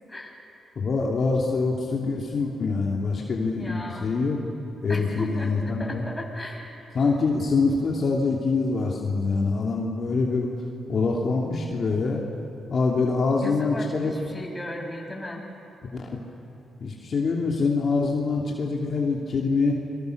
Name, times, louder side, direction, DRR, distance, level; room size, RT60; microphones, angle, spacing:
voice 1, 0.7-4.4 4.8-6.0 6.9-10.5 10.9-12.2 12.7-14.1 15.9-16.1 16.8-19.8, left 4 dB, 50° left, -2 dB, 3.0 m, -25 dB
voice 2, 3.2-4.1 4.9-5.5 5.8-6.7 13.4-15.5, left 1 dB, 15° left, 0 dB, 6.5 m, -36 dB
27.5 x 24.0 x 6.7 m, 3.0 s
cardioid pair, 85°, 0 cm